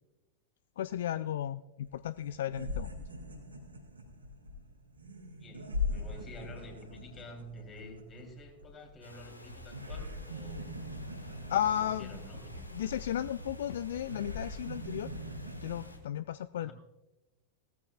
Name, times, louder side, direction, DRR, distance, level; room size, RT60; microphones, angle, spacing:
voice 1, 0.8-2.9 11.2-12.1 12.7-15.1 15.6-16.7, left 10 dB, 60° left, 15 dB, 0.3 m, -34 dB
sound 1, 1.8-1.9 2.1-9.2 9.5-15.8, left 2 dB, 80° right, 2.5 m, -41 dB
voice 2, 5.4-10.7 11.3-12.7 16.5-16.7, left 1 dB, 25° left, 3 dB, 3.4 m, -50 dB
sound 2, 9.0-16.0, left 2 dB, 85° left, 1.4 m, -50 dB
18.0 x 14.5 x 2.4 m, 1.0 s
figure-of-eight pair, 90°, 0 cm